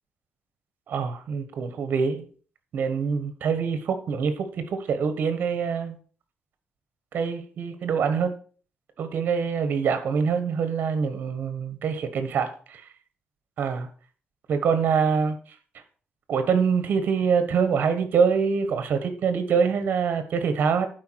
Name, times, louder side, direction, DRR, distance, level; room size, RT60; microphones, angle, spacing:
voice 1, 0.9-2.3 2.7-6.0 7.1-8.3 9.0-12.8 13.6-13.9 14.5-15.4 16.3-20.9, right 6 dB, 55° right, 1.3 m, -25 dB
11.5 x 4.8 x 4.7 m
cardioid pair, 165°, 4 cm